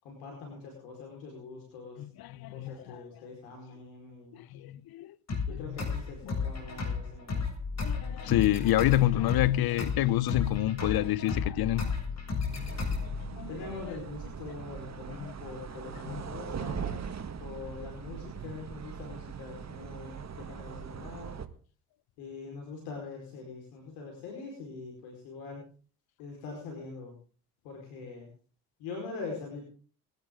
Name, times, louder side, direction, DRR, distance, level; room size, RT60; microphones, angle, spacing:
voice 1, 0.0-2.1 2.5-4.4 5.5-7.5 13.5-21.3 22.2-25.6 26.2-27.1 27.6-28.3 28.8-29.7, left 4 dB, 80° left, 5.0 m, -43 dB
voice 2, 2.0-3.0 4.3-5.1 5.5-5.6 7.8-11.9 12.3-12.8 13.3-13.5 16.1-16.2, left 14 dB, 60° left, 0.9 m, -28 dB
sound 1, 5.3-13.3, left 5 dB, 35° left, 7.4 m, -33 dB
sound 2, 12.5-21.5, right 7 dB, 40° right, 1.8 m, -41 dB
21.0 x 11.5 x 3.8 m
hypercardioid pair, 65°, 43 cm